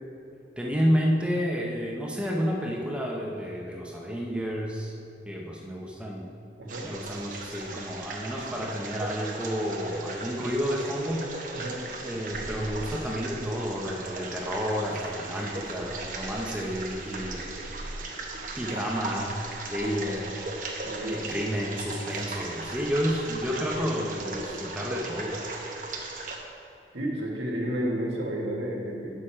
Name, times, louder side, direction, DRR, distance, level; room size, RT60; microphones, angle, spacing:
voice 1, 0.6-5.0 5.3-6.3 6.8-11.3 12.0-17.4 18.6-19.4 19.7-20.3 21.1-25.4, equal, 5° right, -2 dB, 0.7 m, -30 dB
sound 1, 6.7-26.4, right 2 dB, 45° right, 0.9 m, -37 dB
voice 2, 20.8-21.2 26.9-29.2, right 1 dB, 85° right, -2 dB, 1.6 m, -31 dB
8.7 x 6.5 x 4.4 m, 2.6 s
head